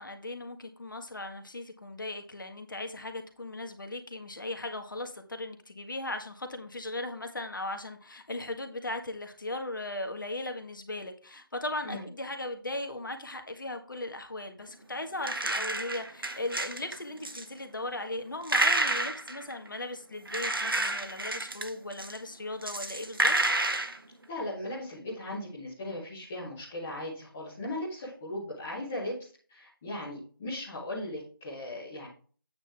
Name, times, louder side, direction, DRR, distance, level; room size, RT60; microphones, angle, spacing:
voice 1, 0.0-23.3, left 2 dB, 60° left, 6 dB, 1.7 m, -38 dB
sound 1, 15.2-17.0 17.2-17.4 18.4-19.8 20.3-22.2 22.6-24.0, right 2 dB, 70° right, 1.4 m, -29 dB
voice 2, 24.3-32.1, left 1 dB, 5° left, -8 dB, 0.4 m, -38 dB
9.0 x 6.2 x 3.5 m, 0.40 s
figure-of-eight pair, 165°, 12 cm